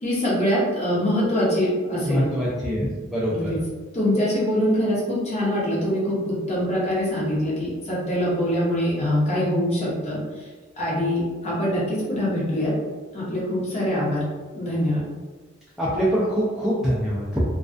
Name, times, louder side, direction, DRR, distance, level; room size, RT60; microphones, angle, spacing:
voice 1, 0.0-2.3 3.3-3.6 3.9-10.5 10.8-12.7 13.1-14.3 14.5-15.0, equal, 30° left, -6 dB, 0.7 m, -24 dB
voice 2, 2.0-3.5 15.8-17.4, equal, ahead, -9 dB, 0.3 m, -24 dB
2.3 x 2.2 x 2.4 m, 1.3 s
head